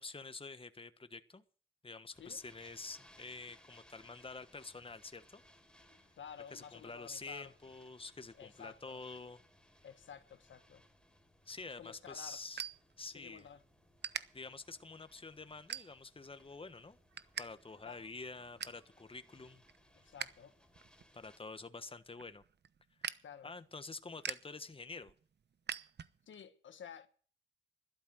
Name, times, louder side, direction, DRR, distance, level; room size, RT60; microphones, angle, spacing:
voice 1, 0.0-1.4 1.8-5.4 6.5-9.4 11.5-12.6 13.0-13.5 14.3-17.0 17.4-19.6 21.1-22.4 23.4-25.1, left 3 dB, 30° left, 1.4 m, -48 dB
sound 1, 2.1-21.4, left 1 dB, 5° left, 3.9 m, -66 dB
voice 2, 6.2-7.5 8.3-9.0 9.8-10.8 11.8-12.4 13.1-13.6 17.8-18.0 20.0-20.6 23.2-23.5 26.3-27.1, left 8 dB, 75° left, 1.5 m, -52 dB
sound 2, 11.4-13.5 14.0-14.2 14.8-15.0 15.7-16.3 16.6-17.5 17.7-17.8 18.2-18.9 19.3-20.4 20.7-26.4, right 7 dB, 60° right, 1.0 m, -45 dB
sound 3, 17.1-21.9, right 5 dB, 85° right, 5.9 m, -78 dB
13.0 x 12.0 x 6.4 m
cardioid pair, 55°, 20 cm